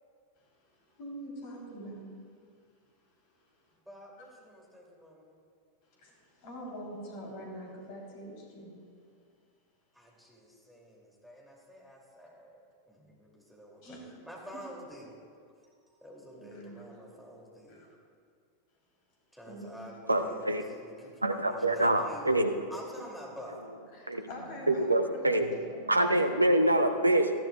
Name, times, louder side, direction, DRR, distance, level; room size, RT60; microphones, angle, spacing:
voice 1, 0.8-2.1 5.9-8.8 13.8-14.2 14.5-14.6 16.3-16.8 17.7-17.9 19.5-19.9 23.9-26.1, equal, 45° left, -2 dB, 3.5 m, -44 dB
voice 2, 3.8-5.3 9.9-14.0 14.2-15.2 15.9-17.8 19.3-22.3 22.7-23.6, equal, ahead, -3 dB, 2.8 m, -48 dB
voice 3, 20.1-20.6 21.2-22.5 24.1-24.3 24.7-25.5 25.9-27.3, right 1 dB, 85° right, 8 dB, 0.7 m, -25 dB
18.5 x 13.5 x 2.4 m, 2.2 s
figure-of-eight pair, 90°, 0 cm